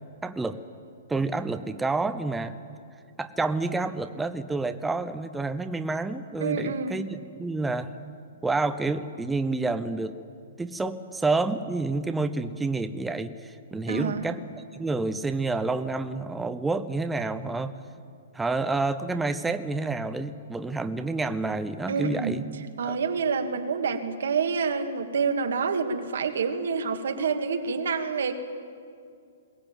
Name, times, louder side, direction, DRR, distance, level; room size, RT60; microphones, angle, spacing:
voice 1, 0.2-0.6 1.1-2.6 3.2-7.9 8.4-10.2 10.6-14.4 14.7-17.7 18.3-22.5 22.8-23.0, right 3 dB, 5° right, 9 dB, 0.6 m, -29 dB
voice 2, 6.4-7.0 13.9-14.2 21.9-22.4 22.8-28.3, right 5 dB, 80° right, 6 dB, 1.9 m, -27 dB
21.5 x 17.5 x 9.0 m, 2.3 s
hypercardioid pair, 155°, 0 cm